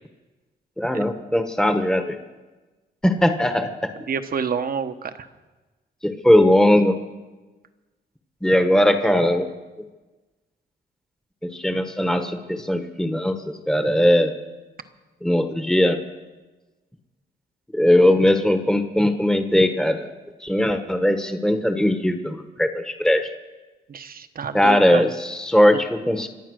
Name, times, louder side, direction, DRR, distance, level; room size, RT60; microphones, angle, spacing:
voice 1, 0.8-2.2 3.0-3.9 6.0-7.0 8.4-9.5 11.4-14.4 15.2-16.0 17.7-20.1 20.4-23.3 24.5-26.3, left 1 dB, 5° left, 7 dB, 1.3 m, -19 dB
voice 2, 4.1-5.3 23.9-25.1, right 6 dB, 55° right, 9 dB, 1.1 m, -28 dB
25.5 x 8.6 x 6.5 m, 1.2 s
cardioid pair, 80°, 18 cm